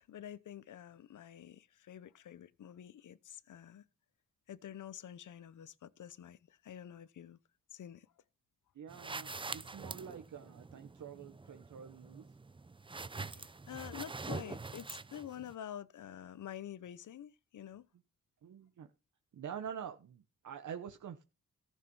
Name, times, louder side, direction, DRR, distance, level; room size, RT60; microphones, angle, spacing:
voice 1, 0.0-3.8 4.5-7.4 7.7-8.1 13.3-17.9, left 10 dB, 70° left, 0.8 m, -48 dB
voice 2, 8.7-12.3 18.4-18.9 19.3-21.2, right 8 dB, 70° right, 1.1 m, -46 dB
sound 1, 8.9-15.5, right 3 dB, 15° right, 0.5 m, -45 dB
14.5 x 6.6 x 5.4 m
cardioid pair, 85°, 31 cm